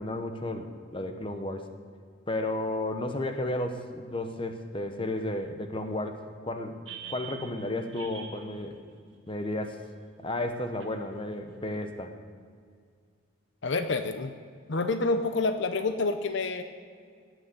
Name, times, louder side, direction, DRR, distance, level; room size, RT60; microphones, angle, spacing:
voice 1, 0.0-1.6 2.3-6.8 7.1-8.8 9.3-9.8 10.2-12.2, left 1 dB, 25° left, 6 dB, 0.9 m, -33 dB
sound 1, 6.9-9.9 10.8-10.9, right 7 dB, 65° right, 1.6 m, -45 dB
voice 2, 13.6-14.3 14.7-16.6, left 3 dB, 60° left, 8 dB, 0.6 m, -28 dB
18.0 x 6.2 x 7.8 m, 2.1 s
head